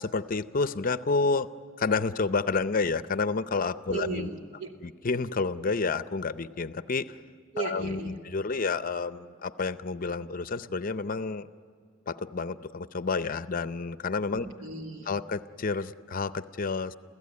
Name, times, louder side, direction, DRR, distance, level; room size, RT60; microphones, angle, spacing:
voice 1, 0.0-1.5 1.8-4.3 4.8-7.2 7.6-11.5 12.1-14.4 15.1-17.0, left 4 dB, 45° left, 13 dB, 0.6 m, -29 dB
voice 2, 3.9-4.7 7.5-8.2 14.3-15.2, right 4 dB, 80° right, 2 dB, 2.6 m, -36 dB
28.5 x 16.0 x 9.6 m, 2.1 s
head